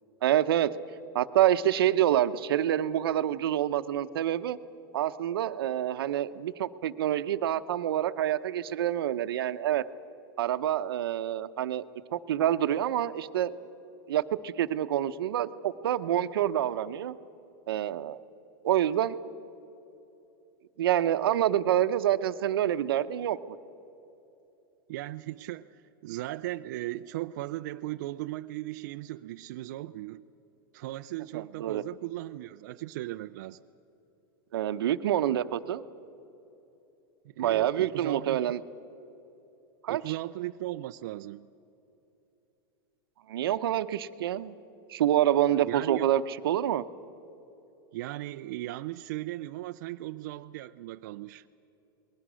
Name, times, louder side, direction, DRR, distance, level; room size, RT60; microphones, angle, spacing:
voice 1, 0.2-0.7 1.1-4.6 4.9-9.8 10.4-11.8 12.1-13.5 14.1-17.2 17.7-18.2 18.6-19.2 20.8-23.6 31.3-31.8 34.5-35.8 37.4-38.6 39.8-40.1 43.3-44.5 44.9-46.8, right 11 dB, 85° right, 12 dB, 0.9 m, -27 dB
voice 2, 24.9-30.2 30.7-33.6 37.4-38.6 39.9-41.5 45.5-46.1 47.9-51.5, right 16 dB, 50° right, 9 dB, 0.4 m, -37 dB
28.5 x 20.5 x 6.3 m, 3.0 s
supercardioid pair, 170°, 12 cm